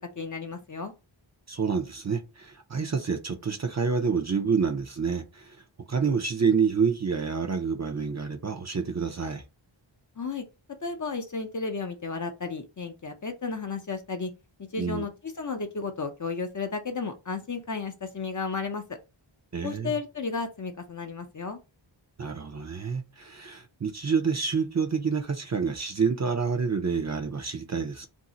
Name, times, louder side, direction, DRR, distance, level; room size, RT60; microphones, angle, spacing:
voice 1, 0.2-0.9 10.2-10.4 10.8-14.3 14.7-15.1 15.4-18.8 19.6-21.6, left 4 dB, 40° left, 0.5 m, -33 dB
voice 2, 1.5-5.6 5.9-9.4 14.8-15.0 19.5-20.0 22.2-28.1, right 5 dB, 35° right, 0.5 m, -28 dB
2.6 x 2.0 x 3.8 m
wide cardioid pair, 60°, 48 cm